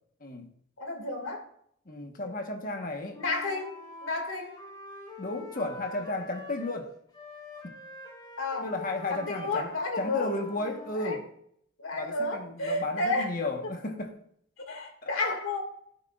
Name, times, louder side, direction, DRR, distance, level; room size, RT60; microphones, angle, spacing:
voice 1, 0.2-0.5 1.8-3.2 5.2-6.9 7.6-7.7 8.6-9.7 10.0-11.3 11.9-14.2 15.2-15.3, left 2 dB, 45° left, 1.3 m, -34 dB
voice 2, 0.8-1.4 2.2-2.3 3.2-3.7 4.0-4.5 8.4-8.7 9.1-10.3 10.9-11.2 11.8-13.5 14.7-15.6, left 2 dB, 75° left, 2.4 m, -31 dB
Wind instrument woodwind instrument, 3.1-6.8 7.1-11.0, left 3 dB, 20° left, 3.2 m, -46 dB
16.5 x 8.2 x 2.5 m
head